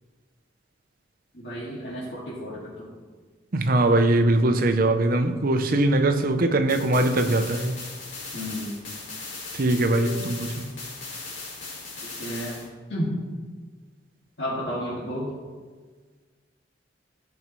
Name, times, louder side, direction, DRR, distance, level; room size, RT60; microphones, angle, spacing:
voice 1, 1.3-2.9 8.3-8.7 9.9-10.2 12.0-12.6 12.9-13.1 14.4-15.3, equal, 65° left, 2.1 m, -32 dB
voice 2, 3.5-7.8 9.5-10.5, right 2 dB, 50° right, 0.7 m, -21 dB
sound 1, 6.7-12.7, left 3 dB, 85° left, 2.4 m, -38 dB
15.5 x 5.4 x 3.1 m
head